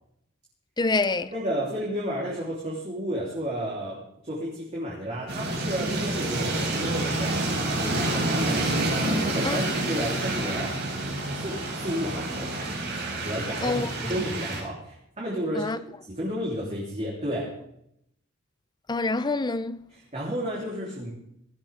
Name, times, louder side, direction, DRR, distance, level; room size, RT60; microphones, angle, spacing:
voice 1, 0.8-1.3 9.4-9.6 13.6-13.9 15.6-15.8 18.9-19.8, left 3 dB, 20° left, 0.6 m, -26 dB
voice 2, 1.3-7.4 7.8-8.7 9.0-10.8 11.3-12.5 13.2-15.8 16.1-17.5 19.9-21.1, equal, 35° right, 3.6 m, -32 dB
sound 1, 5.3-14.6, right 2 dB, 50° right, 5.1 m, -28 dB
18.0 x 13.5 x 3.6 m
head